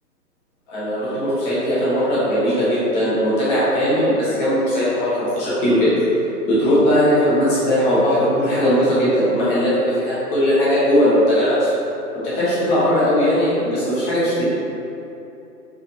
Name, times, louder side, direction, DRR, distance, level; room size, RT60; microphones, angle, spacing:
voice 1, 0.7-5.9 6.4-9.7 10.0-11.7 12.2-14.4, equal, 15° left, -11 dB, 0.9 m, -18 dB
4.9 x 3.6 x 2.7 m, 2.9 s
figure-of-eight pair, 140°, 49 cm